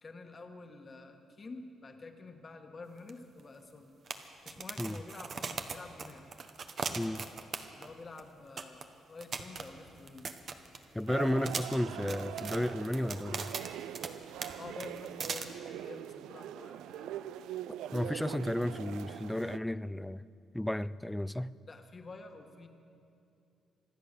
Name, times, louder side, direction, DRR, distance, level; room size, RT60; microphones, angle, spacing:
voice 1, 0.0-3.9 4.4-6.4 7.7-10.3 14.6-17.3 21.7-22.7, left 3 dB, 35° left, 1.5 m, -49 dB
sound 1, 3.1-3.2 3.4-3.5 4.1-7.9 8.2-8.3 8.6-8.8 9.2-11.0 11.4-14.1 14.4-14.5 14.8-15.4, right 5 dB, 50° right, 1.0 m, -39 dB
voice 2, 7.0-7.3 10.9-13.5 17.9-20.2 20.5-21.5, left 1 dB, 5° left, 0.3 m, -33 dB
sound 2, 11.1-19.6, right 11 dB, 85° right, 0.3 m, -42 dB
25.0 x 8.4 x 6.8 m
cardioid pair, 90°, 0 cm